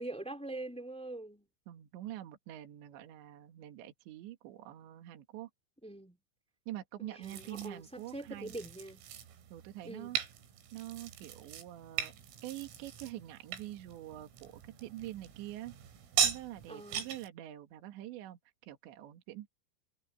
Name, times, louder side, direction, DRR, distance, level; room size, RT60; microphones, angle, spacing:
voice 1, 0.0-1.5 5.8-6.2 7.0-9.0 9.8-10.1 16.7-17.1, right 2 dB, ahead, 1.7 m, -43 dB
voice 2, 1.7-5.5 6.7-8.5 9.5-10.2 10.7-12.2 12.4-15.8 16.2-19.5, right 14 dB, 65° right, 3.9 m, -45 dB
sound 1, 7.2-17.3, right 8 dB, 85° right, 5.9 m, -39 dB
omnidirectional pair, 6.0 m